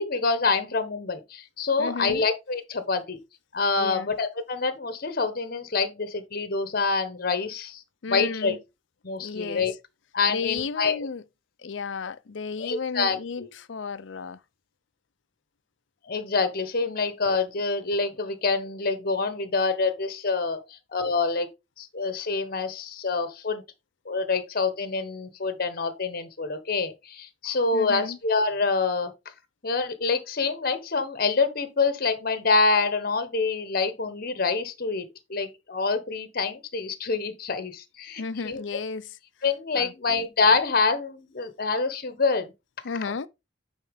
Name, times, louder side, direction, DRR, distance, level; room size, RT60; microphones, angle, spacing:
voice 1, 0.0-3.2 3.5-7.8 8.1-8.6 9.0-9.7 10.1-11.1 12.6-13.5 16.0-21.5 21.8-23.6 24.0-29.1 29.6-38.6 39.4-42.5, left 4 dB, 55° left, 1.1 m, -26 dB
voice 2, 1.8-2.2 3.8-4.1 8.0-8.6 9.2-9.7 10.3-11.2 11.6-14.4 27.7-28.2 38.2-39.2 39.7-40.3 42.8-43.3, left 5 dB, 80° left, 0.6 m, -33 dB
9.2 x 4.5 x 3.5 m
head